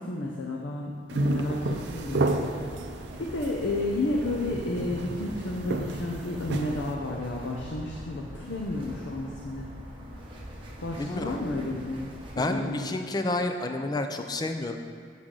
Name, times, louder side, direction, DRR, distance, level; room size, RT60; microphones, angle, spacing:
voice 1, 0.0-2.3 3.2-9.7 10.8-12.1 12.4-13.0, left 2 dB, 85° left, -1 dB, 0.6 m, -31 dB
sound 1, 1.1-6.9, right 2 dB, 65° right, 0.5 m, -31 dB
sound 2, 1.7-12.4, equal, 30° right, 0.9 m, -43 dB
voice 2, 11.0-11.4 12.4-14.8, left 2 dB, 20° left, 6 dB, 0.4 m, -30 dB
7.2 x 6.3 x 3.8 m, 2.1 s
head